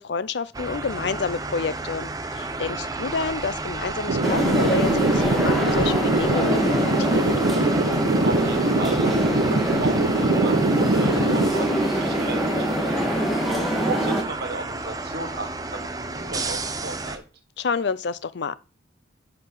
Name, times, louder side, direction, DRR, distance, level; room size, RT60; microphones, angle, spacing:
voice 1, 0.0-7.2 17.6-18.5, left 5 dB, 65° left, 0.5 m, -29 dB
sound 1, 0.5-17.2, right 3 dB, 20° right, 0.7 m, -32 dB
sound 2, 4.1-11.5, right 2 dB, 75° right, 0.8 m, -23 dB
sound 3, 4.2-14.2, equal, ahead, 1.6 m, -24 dB
voice 2, 8.2-13.3 13.8-17.2, right 2 dB, 60° right, 1.5 m, -35 dB
10.5 x 4.6 x 4.0 m
head